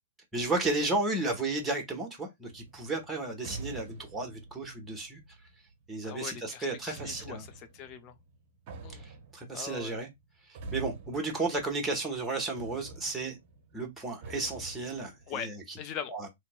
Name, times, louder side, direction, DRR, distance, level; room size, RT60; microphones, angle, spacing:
voice 1, 0.3-5.2 5.9-7.5 9.0-10.1 10.7-13.4 13.7-15.8 16.1-16.3, right 3 dB, 10° right, 1.0 m, -33 dB
sound 1, 2.5-5.9 6.9-12.3 12.6-15.4, right 3 dB, 40° right, 0.7 m, -47 dB
voice 2, 6.0-8.1 8.8-9.0 9.5-10.0 15.3-15.5 15.8-16.1, left 8 dB, 30° left, 0.6 m, -41 dB
2.9 x 2.7 x 2.2 m
figure-of-eight pair, 110°, 0 cm